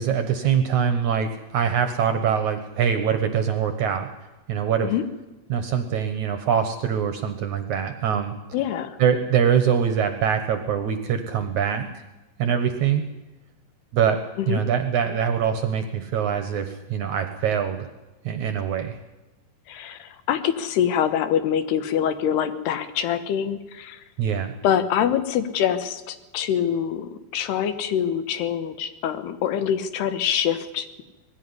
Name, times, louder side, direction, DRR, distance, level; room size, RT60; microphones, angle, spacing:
voice 1, 0.0-4.1 4.5-4.9 5.5-8.3 9.0-11.9 12.4-13.0 13.9-17.9 18.3-19.0 24.2-24.5, right 8 dB, 65° right, 8 dB, 2.1 m, -23 dB
voice 2, 8.5-9.0 14.4-14.6 19.7-24.0 24.6-31.0, left 9 dB, 80° left, 11 dB, 3.3 m, -25 dB
20.5 x 15.5 x 9.8 m, 1.1 s
omnidirectional pair, 4.7 m